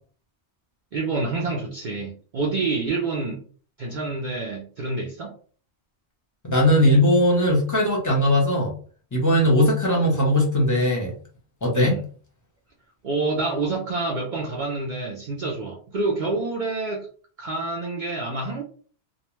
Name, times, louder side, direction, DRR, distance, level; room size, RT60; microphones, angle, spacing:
voice 1, 0.9-3.4 3.8-5.3 11.7-12.0 13.0-17.1 17.4-18.6, right 3 dB, 55° right, -1 dB, 0.5 m, -27 dB
voice 2, 6.4-8.7 9.1-11.1 11.6-12.0, left 1 dB, 20° left, -1 dB, 0.7 m, -19 dB
2.3 x 2.1 x 3.0 m, 0.42 s
omnidirectional pair, 1.2 m